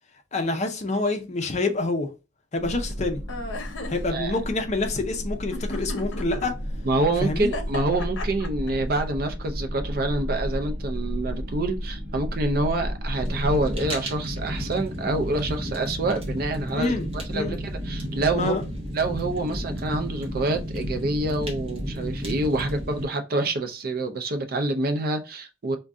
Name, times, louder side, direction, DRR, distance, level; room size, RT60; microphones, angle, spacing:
voice 1, 0.3-2.1 2.5-3.2 3.9-6.6 7.2-7.5 16.7-17.6 18.3-18.6, left 2 dB, 35° left, 0.5 m, -27 dB
sound 1, 2.6-13.8, equal, 75° right, 0.8 m, -32 dB
sound 2, 3.3-4.0 5.5-6.5 7.4-8.7, left 2 dB, 75° left, 0.6 m, -34 dB
voice 2, 6.8-18.5 18.9-25.8, right 2 dB, 50° right, 0.5 m, -27 dB
Fire, 13.2-23.0, equal, 30° right, 0.8 m, -32 dB
2.5 x 2.2 x 3.5 m
head